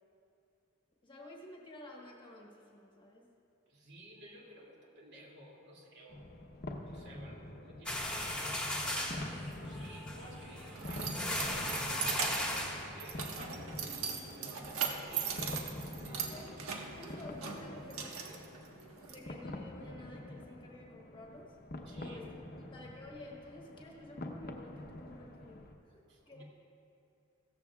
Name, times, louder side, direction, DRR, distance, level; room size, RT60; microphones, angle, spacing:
voice 1, 1.0-3.2 16.3-16.5 16.9-18.4 19.1-21.5 21.9-25.6 26.3-26.4, left 1 dB, 20° left, -2 dB, 1.3 m, -51 dB
voice 2, 3.7-6.2 6.5-9.0 9.6-13.4 14.4-16.5 21.9-22.2 22.5-22.7 26.1-26.4, equal, 55° right, -2 dB, 2.5 m, -54 dB
sound 1, 6.1-25.7, left 1 dB, 45° left, 0.9 m, -47 dB
sound 2, 7.9-13.4, left 1 dB, 5° left, 1.6 m, -37 dB
Keys jangling, 10.1-19.1, right 6 dB, 80° right, 1.4 m, -40 dB
17.0 x 14.0 x 2.4 m, 2.7 s
head